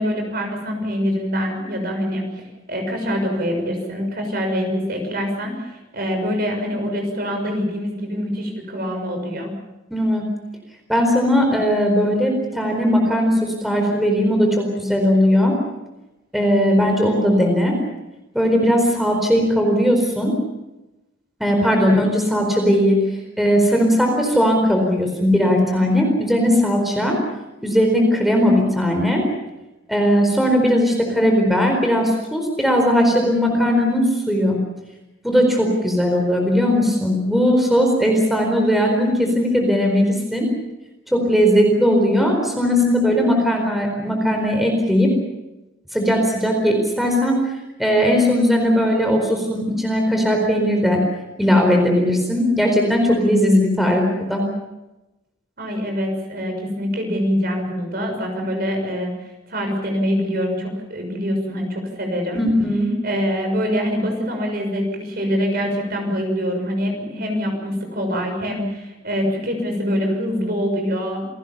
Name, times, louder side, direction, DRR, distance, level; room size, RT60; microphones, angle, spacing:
voice 1, 0.0-9.5 55.6-59.1 59.5-62.5 63.0-71.3, equal, 50° right, 3 dB, 6.5 m, -24 dB
voice 2, 9.9-10.2 10.9-15.6 16.3-17.8 18.3-20.3 21.4-23.0 23.4-27.2 27.6-29.2 29.9-34.6 35.2-40.5 41.1-45.1 45.9-47.4 47.8-51.0 51.4-54.4 62.3-62.9, equal, ahead, 2 dB, 4.4 m, -18 dB
28.5 x 19.0 x 7.2 m, 1.0 s
head